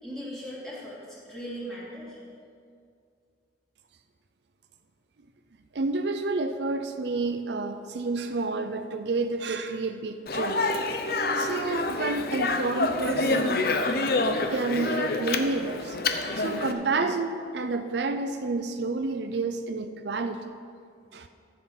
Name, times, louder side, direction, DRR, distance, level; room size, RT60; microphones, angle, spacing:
voice 1, 0.0-2.2, equal, 5° left, -9 dB, 3.4 m, -38 dB
voice 2, 5.7-10.7 11.0-13.6 14.5-20.5 21.1-21.3, right 3 dB, 70° right, 8 dB, 0.5 m, -30 dB
Speech, 10.3-16.7, left 3 dB, 55° left, 0.7 m, -27 dB
14.0 x 7.5 x 5.8 m, 2.3 s
head